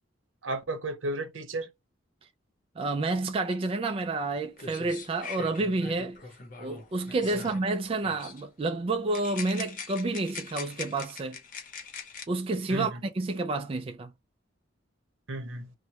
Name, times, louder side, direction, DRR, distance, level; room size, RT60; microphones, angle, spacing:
voice 1, 0.4-1.7 7.3-7.4 12.7-13.0 15.3-15.7, right 2 dB, 80° right, 0.8 m, -34 dB
voice 2, 2.8-6.2 6.6-11.4 12.3-14.1, right 2 dB, 30° right, 0.3 m, -29 dB
sound 1, 4.2-4.3 4.6-7.7 8.0-8.4 9.1-12.3, left 5 dB, 45° left, 0.8 m, -42 dB
3.1 x 2.1 x 2.8 m
head